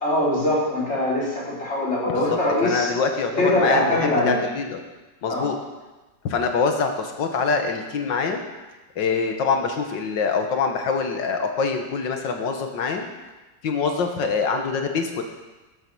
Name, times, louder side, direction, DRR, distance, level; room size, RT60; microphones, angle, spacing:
voice 1, 0.0-2.9 3.4-4.4 5.3-5.5, left 1 dB, 35° left, -6 dB, 4.1 m, -22 dB
voice 2, 2.1-4.8 5.2-5.6 6.2-8.4 9.0-13.1 13.6-15.2, left 5 dB, 90° left, 4 dB, 2.0 m, -24 dB
12.5 x 7.6 x 6.1 m, 1.2 s
omnidirectional pair, 1.9 m